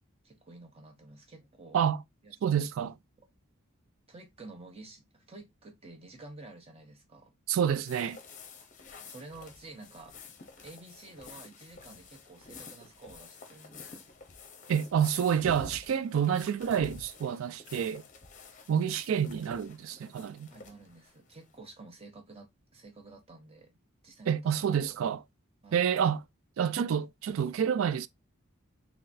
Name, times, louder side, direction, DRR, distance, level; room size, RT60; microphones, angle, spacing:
voice 1, 0.2-1.8 2.2-2.7 3.2-3.3 4.1-7.3 9.0-10.2 10.6-14.1 20.5-23.7 24.0-25.0 25.6-25.9, right 2 dB, 30° right, 0.8 m, -51 dB
voice 2, 2.4-2.9 7.5-8.2 14.7-18.0 18.7-20.5 24.3-25.2 25.7-26.2 26.6-28.1, right 8 dB, 75° right, 0.3 m, -28 dB
sound 1, 7.9-21.5, left 4 dB, 35° left, 0.7 m, -50 dB
3.8 x 3.0 x 2.6 m
head